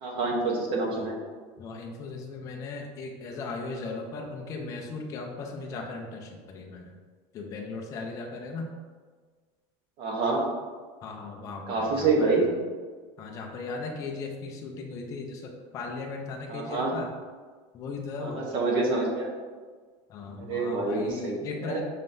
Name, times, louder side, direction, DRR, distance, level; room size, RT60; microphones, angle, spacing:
voice 1, 0.0-1.2 10.0-10.4 11.7-12.5 16.5-16.9 18.2-19.3 20.5-21.8, right 3 dB, 35° right, 0 dB, 0.8 m, -27 dB
voice 2, 1.6-6.9 7.3-8.7 11.0-12.5 13.2-17.1 17.7-18.5 20.1-21.8, left 3 dB, 20° left, 1 dB, 0.4 m, -37 dB
5.6 x 3.7 x 2.6 m, 1.5 s
cardioid pair, 175°, 15 cm